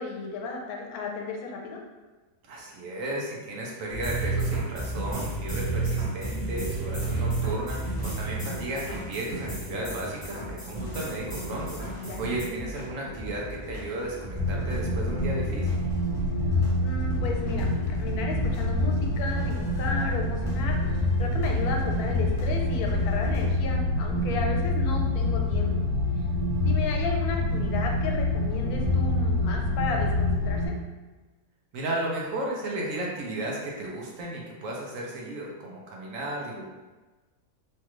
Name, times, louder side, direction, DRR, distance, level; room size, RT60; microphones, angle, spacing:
voice 1, 0.0-1.8 11.9-12.3 16.8-25.8 26.6-30.7, left 4 dB, 80° left, 1 dB, 1.1 m, -34 dB
voice 2, 2.5-15.8 31.7-36.7, right 1 dB, 65° right, -3 dB, 1.0 m, -34 dB
sound 1, 3.9-12.5, right 3 dB, 15° right, 1.0 m, -31 dB
sound 2, 6.5-23.5, equal, 45° left, 0.4 m, -41 dB
sound 3, 14.3-30.7, left 2 dB, 40° right, 1.2 m, -26 dB
3.1 x 2.4 x 2.9 m, 1.2 s
omnidirectional pair, 1.6 m